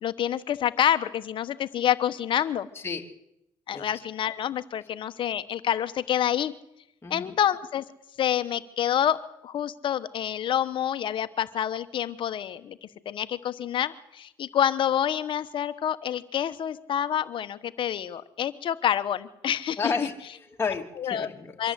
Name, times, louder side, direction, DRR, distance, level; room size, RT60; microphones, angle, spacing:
voice 1, 0.0-2.7 3.7-6.5 7.1-7.8 8.2-19.8 21.0-21.3 21.6-21.7, left 10 dB, 55° left, 12 dB, 1.1 m, -27 dB
voice 2, 19.8-21.7, left 5 dB, 25° left, 2 dB, 2.7 m, -32 dB
24.0 x 14.0 x 8.2 m, 0.82 s
supercardioid pair, 90°, 10 cm